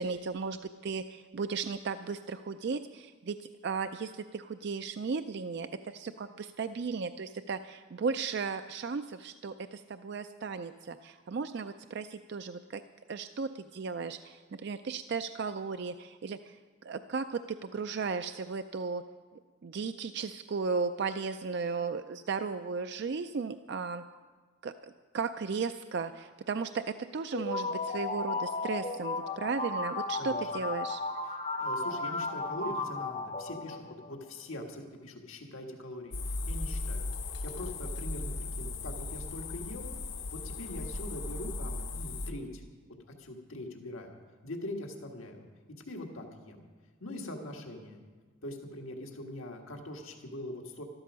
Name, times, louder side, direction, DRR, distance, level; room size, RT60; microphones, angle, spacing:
voice 1, 0.0-12.8 13.1-16.6 16.8-19.0 19.6-24.0 24.6-31.0, right 5 dB, 55° right, 9 dB, 0.4 m, -35 dB
sound 1, 27.3-34.1, left 3 dB, 35° left, 0.7 m, -34 dB
voice 2, 30.2-30.5 31.2-39.9 40.3-42.6 43.2-45.5 45.9-46.6 47.0-48.0 48.4-50.8, left 1 dB, 85° left, 2 dB, 1.7 m, -42 dB
sound 2, 36.1-42.3, left 2 dB, 60° left, 1.0 m, -37 dB
13.0 x 13.0 x 6.2 m, 1.4 s
head